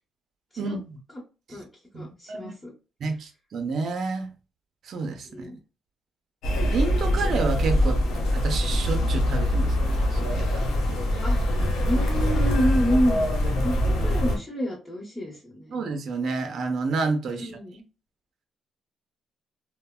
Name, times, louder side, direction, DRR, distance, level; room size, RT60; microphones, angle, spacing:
voice 1, 0.6-1.0 1.9-2.5 3.0-4.3 4.8-5.3 6.7-8.0 8.3-10.6 15.7-17.5, right 4 dB, 60° right, 0.6 m, -29 dB
voice 2, 1.9-2.7 5.2-5.6 11.2-11.4 11.8-15.7 17.2-17.8, equal, 10° left, 1.0 m, -29 dB
sound 1, 6.4-14.4, left 1 dB, 85° left, 0.7 m, -23 dB
3.2 x 2.1 x 2.2 m
cardioid pair, 90°, 0 cm